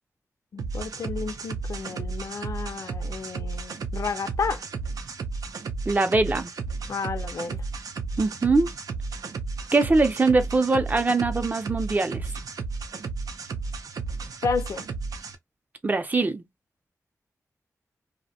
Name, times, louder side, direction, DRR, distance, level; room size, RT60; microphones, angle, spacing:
voice 1, 0.5-4.6 6.9-7.6 14.4-14.8, left 5 dB, 65° left, 0.5 m, -31 dB
sound 1, 0.6-15.3, right 4 dB, 90° right, 0.5 m, -33 dB
voice 2, 5.9-6.5 8.2-8.7 9.7-12.3 15.8-16.4, right 3 dB, 30° right, 0.5 m, -22 dB
2.5 x 2.1 x 2.7 m
wide cardioid pair, 130°, 6 cm